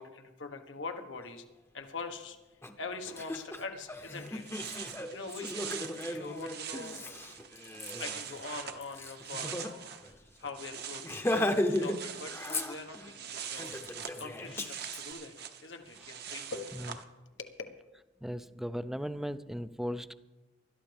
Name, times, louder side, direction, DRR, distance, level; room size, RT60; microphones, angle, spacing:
voice 1, 0.0-1.5 1.7-2.4 2.8-4.4 5.1-7.3 7.6-13.7 14.2-15.3 15.6-16.8 17.4-17.5, left 4 dB, 85° left, 6 dB, 1.4 m, -43 dB
Laughter, 2.6-2.7 3.1-9.7 10.0-10.1 10.4-10.6 11.0-12.0 12.3-13.1 13.5-15.0, left 1 dB, 15° left, 0.8 m, -35 dB
sound 1, 4.3-10.1 10.4-17.0, right 8 dB, 60° right, 1.1 m, -44 dB
voice 2, 18.2-20.1, equal, ahead, 13 dB, 0.4 m, -37 dB
20.0 x 13.0 x 3.5 m, 1.1 s
head